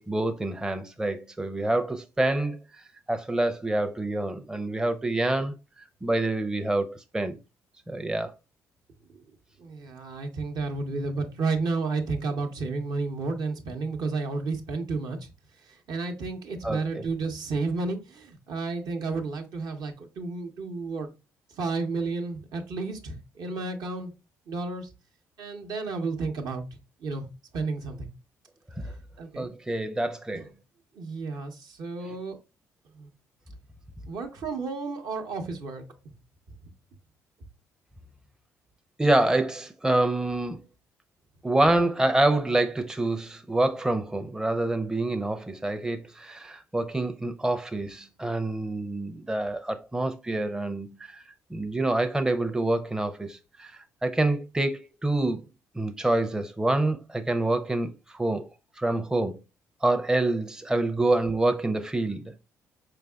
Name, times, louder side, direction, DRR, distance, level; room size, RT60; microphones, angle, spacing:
voice 1, 0.0-2.6 3.1-7.4 7.9-8.3 16.6-17.0 28.8-28.9 29.4-30.5 32.1-32.2 39.0-40.6 41.4-51.2 51.5-55.5 55.7-58.5 58.8-59.4 59.8-62.3, right 2 dB, 10° right, 0.5 m, -27 dB
voice 2, 9.6-15.3 15.6-21.1 21.6-24.1 24.5-24.9 25.4-26.6 27.0-27.3 27.5-28.1 28.8-29.5 30.3-30.5 30.9-32.4 32.9-33.1 34.1-35.8, right 3 dB, 60° right, 0.8 m, -32 dB
4.8 x 3.3 x 2.3 m
hypercardioid pair, 50°, 8 cm